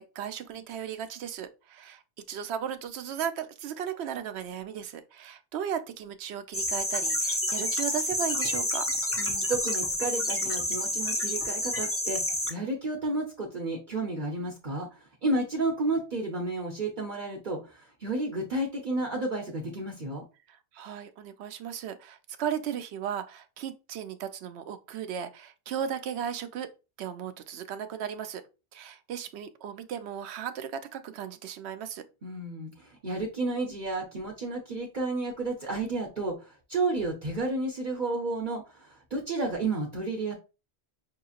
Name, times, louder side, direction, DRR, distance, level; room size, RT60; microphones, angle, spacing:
voice 1, 0.0-2.0 2.3-8.9 20.5-26.7 27.0-28.4 28.7-32.0, right 8 dB, 80° right, 0.8 m, -36 dB
sound 1, 6.5-12.5, left 1 dB, 20° left, 0.4 m, -29 dB
voice 2, 9.2-12.2 12.5-20.2 32.2-40.3, right 2 dB, 50° right, 0.9 m, -32 dB
5.6 x 2.8 x 2.4 m
omnidirectional pair, 1.1 m